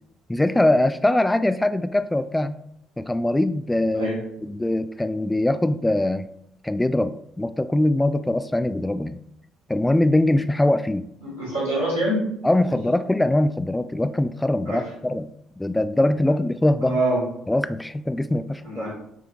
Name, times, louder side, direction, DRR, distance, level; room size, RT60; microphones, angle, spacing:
voice 1, 0.3-2.6 3.0-4.1 4.4-6.3 6.6-9.2 9.7-11.0 12.4-15.3 15.6-17.0 17.5-18.9, left 1 dB, 10° left, 11 dB, 0.5 m, -22 dB
voice 2, 11.2-12.2 12.6-12.7 14.7-14.8 16.8-17.2 18.6-18.9, right 1 dB, 90° right, -9 dB, 2.5 m, -25 dB
9.6 x 3.5 x 2.9 m, 0.74 s
hypercardioid pair, 50°, 0 cm